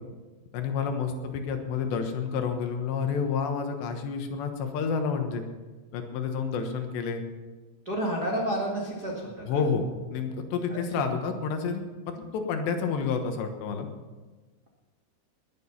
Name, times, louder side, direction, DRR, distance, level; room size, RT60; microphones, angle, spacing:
voice 1, 0.5-5.4 5.9-7.2 9.5-13.9, left 5 dB, 70° left, 5 dB, 3.3 m, -29 dB
voice 2, 7.8-9.6 10.7-10.8, right 1 dB, 50° right, -3 dB, 1.1 m, -30 dB
20.5 x 9.2 x 5.7 m, 1.3 s
omnidirectional pair, 5.4 m